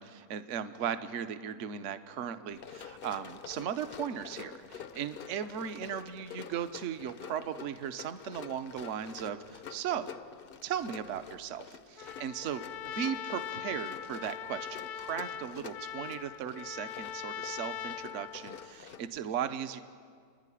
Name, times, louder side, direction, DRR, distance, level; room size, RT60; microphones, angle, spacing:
voice 1, 0.0-10.2 10.6-19.8, right 8 dB, 55° right, 10 dB, 1.1 m, -37 dB
Run, 2.5-19.2, left 8 dB, 55° left, 0.6 m, -48 dB
Trumpet, 12.0-18.8, left 9 dB, 75° left, 1.3 m, -41 dB
29.0 x 10.5 x 9.9 m, 2.1 s
omnidirectional pair, 1.7 m